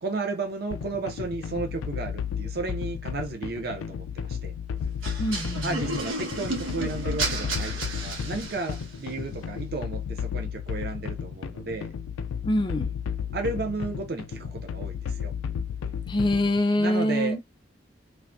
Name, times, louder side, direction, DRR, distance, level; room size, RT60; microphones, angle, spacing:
voice 1, 0.0-4.5 5.6-11.9 13.3-15.3 16.8-17.4, right 3 dB, 50° right, 0.4 m, -33 dB
sound 1, 0.7-16.6, left 7 dB, 90° left, 0.3 m, -33 dB
sound 2, 5.0-9.0, right 2 dB, 90° right, 1.1 m, -32 dB
voice 2, 5.2-5.8 12.4-12.9 16.1-17.4, left 1 dB, 25° left, 0.4 m, -25 dB
3.2 x 2.1 x 2.5 m
head